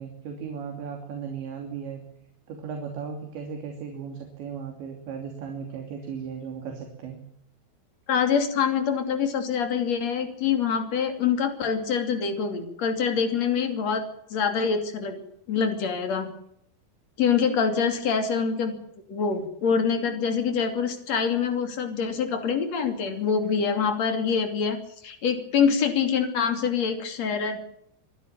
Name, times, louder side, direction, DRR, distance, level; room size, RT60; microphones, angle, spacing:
voice 1, 0.0-2.0 2.5-7.2, right 6 dB, 65° right, 3 dB, 4.9 m, -36 dB
voice 2, 8.1-14.0 14.3-15.2 15.5-16.3 17.2-18.7 19.1-27.6, left 6 dB, 40° left, 6 dB, 3.2 m, -25 dB
25.0 x 12.5 x 9.0 m, 0.74 s
omnidirectional pair, 5.8 m